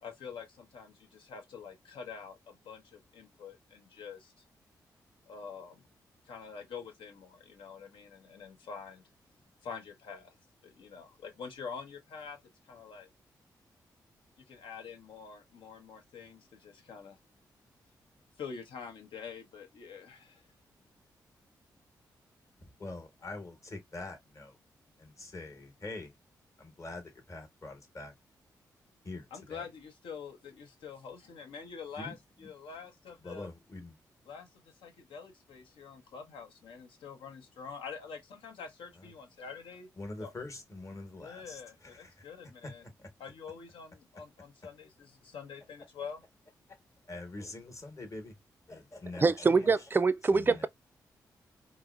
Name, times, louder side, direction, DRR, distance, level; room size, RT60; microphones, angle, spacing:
voice 1, 0.0-4.3 5.3-5.8 6.3-9.0 9.6-10.3 10.6-12.4 12.7-13.1 14.5-17.2 18.4-20.4 29.3-33.5 34.2-39.9 40.2-40.3 41.2-42.8 43.2-46.2, left 6 dB, 75° left, 0.9 m, -46 dB
voice 2, 22.8-24.5 25.0-26.1 26.6-28.1 29.0-29.6 32.0-32.1 33.2-33.9 40.0-42.1 43.0-43.1 47.1-48.3 48.7-49.7 50.3-50.7, left 2 dB, 35° left, 1.1 m, -44 dB
voice 3, 49.2-50.7, right 4 dB, 25° right, 0.3 m, -25 dB
3.8 x 2.0 x 2.4 m
hypercardioid pair, 40°, 9 cm